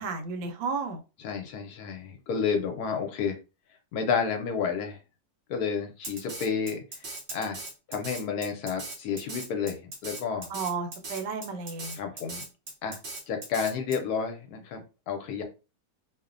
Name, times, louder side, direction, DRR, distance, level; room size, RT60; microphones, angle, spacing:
voice 1, 0.0-1.0 10.5-12.0, right 4 dB, 85° right, 6 dB, 1.2 m, -33 dB
voice 2, 1.2-3.4 3.9-5.0 5.5-7.6 7.9-10.5 11.9-12.4 12.8-13.0 13.3-15.4, left 6 dB, 70° left, 5 dB, 1.0 m, -31 dB
Drum kit, 6.0-14.0, right 2 dB, 60° right, 0.7 m, -39 dB
2.9 x 2.1 x 2.4 m, 0.30 s
omnidirectional pair, 1.9 m